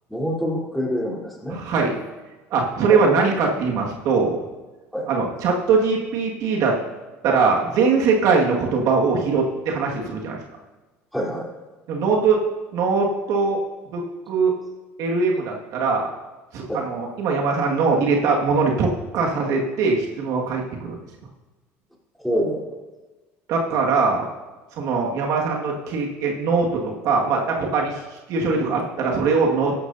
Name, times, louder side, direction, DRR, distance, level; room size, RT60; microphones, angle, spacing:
voice 1, 0.1-1.6 2.9-3.0 4.9-5.1 11.1-11.5 16.7-16.9 22.2-22.7, equal, ahead, -4 dB, 3.7 m, -26 dB
voice 2, 1.5-2.0 2.5-4.4 5.1-6.7 7.2-10.4 11.9-12.4 12.7-13.6 13.9-14.5 15.0-16.1 16.5-21.0 23.5-24.3 24.8-29.8, right 4 dB, 65° right, -1 dB, 1.9 m, -21 dB
14.5 x 11.5 x 2.8 m, 1.2 s
supercardioid pair, 95°, 6 cm